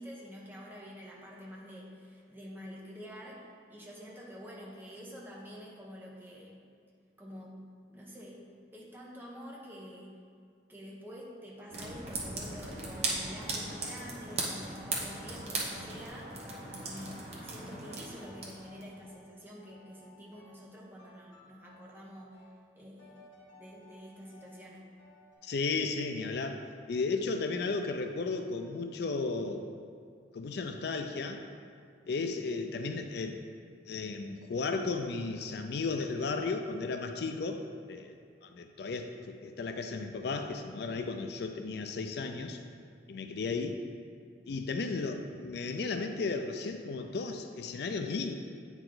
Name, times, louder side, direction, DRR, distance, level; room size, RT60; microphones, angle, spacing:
voice 1, 0.0-6.6 7.2-7.5 7.9-8.4 8.7-10.1 10.7-16.3 16.8-22.4 22.8-23.3 23.5-24.9, equal, 10° right, -4 dB, 1.0 m, -48 dB
sound 1, 11.7-18.9, right 3 dB, 35° right, 1.1 m, -38 dB
sound 2, 12.6-13.9 14.3-15.4 15.6-17.4 17.6-19.2 19.6-20.7 21.0-22.0 22.3-22.6 23.0-24.6 25.0-25.3, left 2 dB, 80° left, 1.9 m, -57 dB
voice 2, 25.4-26.6 26.9-29.6 30.3-31.4 32.1-33.4 33.8-37.6 37.9-38.1 38.4-42.6 43.1-43.8 44.5-48.3, left 4 dB, 60° left, 6 dB, 0.4 m, -34 dB
8.6 x 4.8 x 3.9 m, 2.2 s
head